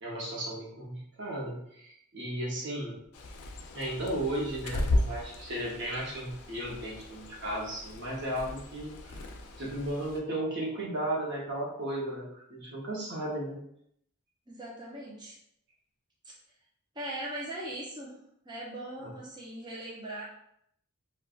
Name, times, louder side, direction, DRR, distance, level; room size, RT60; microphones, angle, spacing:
voice 1, 0.0-3.0 3.7-9.2 9.6-13.6 19.0-19.1, right 1 dB, 50° right, -3 dB, 0.8 m, -35 dB
Bird, 3.1-10.2, left 1 dB, 75° left, 0.4 m, -36 dB
voice 2, 14.5-15.4 16.9-18.2 18.4-20.2, right 1 dB, 20° right, -4 dB, 0.6 m, -39 dB
3.5 x 2.3 x 2.3 m, 0.72 s
head